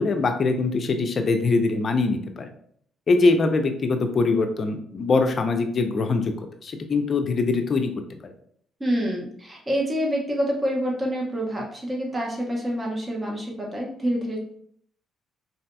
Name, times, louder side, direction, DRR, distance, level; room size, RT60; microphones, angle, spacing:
voice 1, 0.0-2.5 3.1-7.9 8.2-8.3, left 3 dB, 45° left, 6 dB, 0.5 m, -23 dB
voice 2, 8.8-14.4, equal, 20° right, -2 dB, 0.9 m, -27 dB
4.0 x 2.7 x 2.2 m, 0.62 s
cardioid pair, 95°, 0 cm